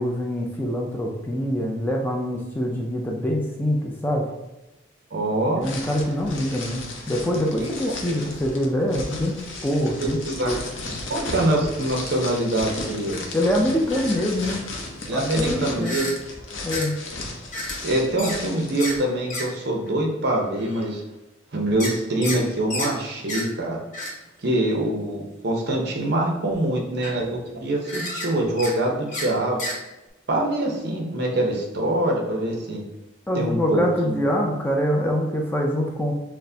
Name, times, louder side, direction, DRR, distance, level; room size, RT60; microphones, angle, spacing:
voice 1, 0.0-4.3 5.6-9.4 9.6-10.6 13.3-14.6 15.1-16.0 16.6-16.9 33.3-36.1, equal, 10° left, -1 dB, 0.4 m, -24 dB
voice 2, 5.1-5.6 7.5-7.7 9.8-10.5 11.1-13.2 15.1-16.1 17.8-21.0 21.5-23.8 24.4-29.6 30.3-32.8 33.3-34.2, right 1 dB, 55° right, 1 dB, 0.7 m, -24 dB
sound 1, 5.6-19.0, left 2 dB, 75° left, 0.7 m, -35 dB
sound 2, 12.4-12.5 13.1-13.2 13.8-14.5 15.8-16.2 16.7-16.9 17.5-17.8 18.2-18.4 18.8-19.0 19.3-19.5 19.9-20.0 20.6-20.9 21.8-22.4 22.7-22.9 23.3-23.5 23.9-24.1 24.8-24.9 25.7-26.0 26.6-26.7 26.9-27.3 27.8-28.3 28.6-28.7 29.1-29.3 29.6-29.8, left 1 dB, 40° left, 1.0 m, -31 dB
6.0 x 2.1 x 2.7 m, 1.0 s
head